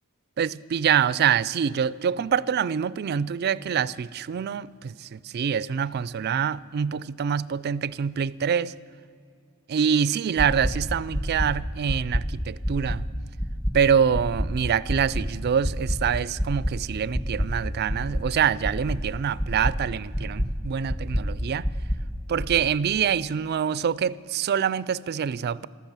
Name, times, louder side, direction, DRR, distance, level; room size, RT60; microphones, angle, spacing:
voice 1, 0.4-8.7 9.7-13.1 13.7-21.7 22.3-25.7, right 7 dB, 50° right, 0.4 m, -25 dB
sound 1, 10.4-10.7 11.1-11.5 11.9-12.2 12.6-13.0 13.4-13.7 14.1-14.5 14.9-15.2 15.6-16.0 16.4-16.7 17.1-17.5 17.9-18.2 18.6-19.0 19.4-19.7 20.1-20.5 20.9-21.2 21.6-22.0 22.4-22.5, equal, 20° left, 1.5 m, -26 dB
13.5 x 13.5 x 7.4 m
head